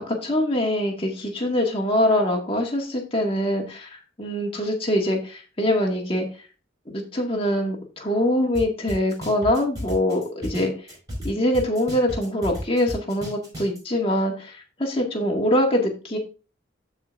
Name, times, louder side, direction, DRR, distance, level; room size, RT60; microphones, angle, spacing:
voice 1, 0.1-6.3 6.9-10.7 11.2-16.2, left 1 dB, 30° left, 0 dB, 1.9 m, -24 dB
sound 1, 8.5-8.6 8.9-11.3 11.5-13.8, equal, 20° right, 5.1 m, -34 dB
14.0 x 4.9 x 2.5 m, 0.35 s
head